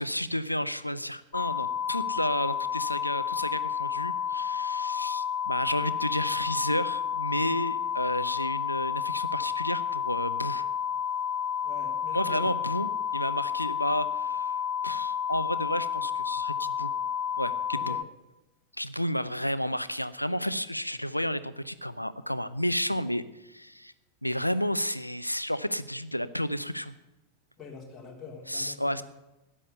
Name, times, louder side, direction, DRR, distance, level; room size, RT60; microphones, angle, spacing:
voice 1, 0.0-10.7 12.1-14.6 14.8-16.9 17.4-18.0 18.8-23.9 24.2-26.9 28.5-29.0, equal, 90° left, 15 dB, 0.6 m, -31 dB
sound 1, 1.3-18.0, left 8 dB, 40° left, 0.7 m, -31 dB
voice 2, 11.6-12.5 17.7-18.0 27.6-29.0, left 4 dB, 15° left, -2 dB, 3.3 m, -45 dB
13.5 x 10.0 x 6.8 m, 1.0 s
figure-of-eight pair, 90°, 0 cm